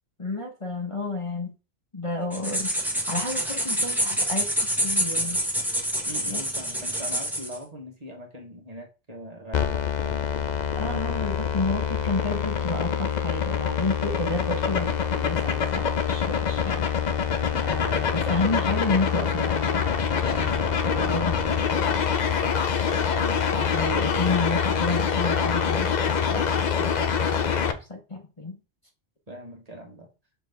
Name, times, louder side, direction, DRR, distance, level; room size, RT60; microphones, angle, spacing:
voice 1, 0.2-1.5 1.9-5.4 6.3-6.5 10.8-16.9 17.6-19.8 20.1-22.0 23.5-28.6, left 3 dB, 30° left, 1 dB, 1.1 m, -31 dB
sound 1, 2.3-7.6, equal, ahead, 1.2 m, -27 dB
voice 2, 6.0-11.0 17.4-17.8 22.9-23.5 23.9-24.4 29.3-30.1, equal, 35° right, 1 dB, 1.4 m, -41 dB
sound 2, 9.5-27.7, left 7 dB, 45° left, 0.7 m, -25 dB
6.7 x 4.0 x 3.4 m, 0.31 s
omnidirectional pair, 1.2 m